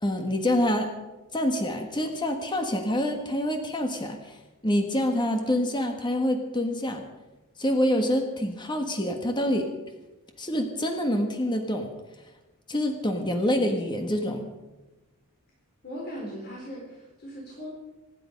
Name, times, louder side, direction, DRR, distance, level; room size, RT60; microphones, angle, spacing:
voice 1, 0.0-0.9 1.3-4.4 4.6-7.0 7.6-9.7 10.4-11.9 12.7-14.5, left 1 dB, 20° left, 5 dB, 1.5 m, -26 dB
voice 2, 15.8-17.7, equal, 45° left, -3 dB, 4.2 m, -38 dB
25.0 x 11.0 x 5.3 m, 1.1 s
head